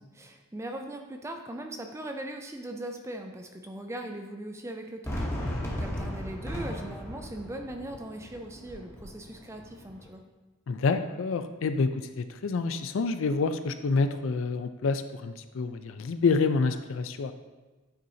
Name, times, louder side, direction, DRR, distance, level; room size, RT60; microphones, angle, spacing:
voice 1, 0.1-5.2 5.7-10.2, right 1 dB, 15° right, 4 dB, 0.4 m, -39 dB
Fireworks, 5.0-10.1, equal, 15° left, 1.0 m, -36 dB
voice 2, 10.7-17.3, left 4 dB, 70° left, 9 dB, 0.4 m, -28 dB
9.2 x 4.2 x 2.7 m, 1.2 s
head